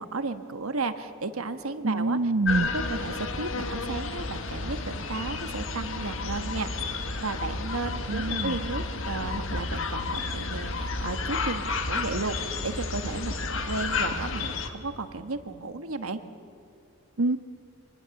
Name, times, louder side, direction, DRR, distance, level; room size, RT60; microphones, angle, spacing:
voice 1, 0.0-2.2 2.6-16.2, right 3 dB, 85° right, 9 dB, 1.3 m, -34 dB
voice 2, 1.8-2.7 8.1-8.6 17.2-17.4, right 2 dB, 60° right, 9 dB, 0.6 m, -25 dB
sound 1, 2.5-14.7, left 3 dB, 65° left, 1.6 m, -31 dB
26.0 x 20.0 x 7.1 m, 2.5 s
head